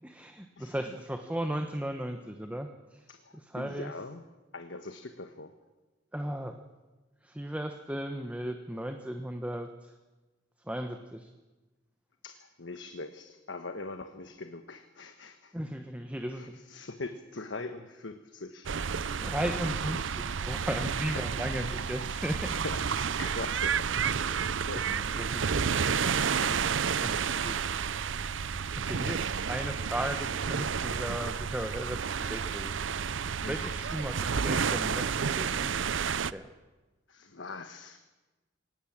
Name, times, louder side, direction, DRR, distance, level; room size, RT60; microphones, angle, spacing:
voice 1, 0.0-3.0 3.5-3.9 6.1-6.6 7.2-9.9 10.7-11.3 15.5-16.6 19.2-22.6 24.9-25.6 27.0-27.5 28.9-33.2 33.5-36.5, right 1 dB, 10° right, 6 dB, 1.2 m, -36 dB
voice 2, 3.1-4.2 4.5-5.5 12.2-15.5 16.3-19.3 20.6-20.7 22.2-23.9 24.2-25.5 26.4-26.7 33.4-33.7 37.1-38.0, left 3 dB, 70° left, 7 dB, 1.3 m, -42 dB
sound 1, 18.6-36.3, right 6 dB, 80° right, 0.6 m, -31 dB
21.0 x 18.5 x 8.8 m, 1.2 s
head